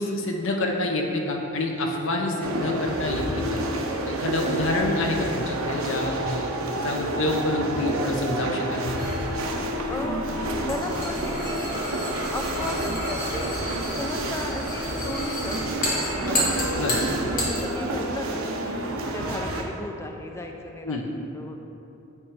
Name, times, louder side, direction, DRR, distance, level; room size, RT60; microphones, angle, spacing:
voice 1, 0.0-3.6 4.1-6.5 6.8-9.1 16.7-17.0 20.8-21.1, left 2 dB, 60° left, 1 dB, 0.6 m, -27 dB
sound 1, 2.4-19.6, right 1 dB, 70° right, 0.7 m, -29 dB
sound 2, 9.0-17.7, left 1 dB, 40° left, 1.3 m, -31 dB
voice 2, 9.9-10.3 10.6-11.7 12.3-13.5 14.0-16.6 17.2-18.9 19.1-21.0 21.3-21.6, left 1 dB, 10° left, 2 dB, 0.4 m, -35 dB
8.7 x 3.2 x 4.7 m, 2.8 s
head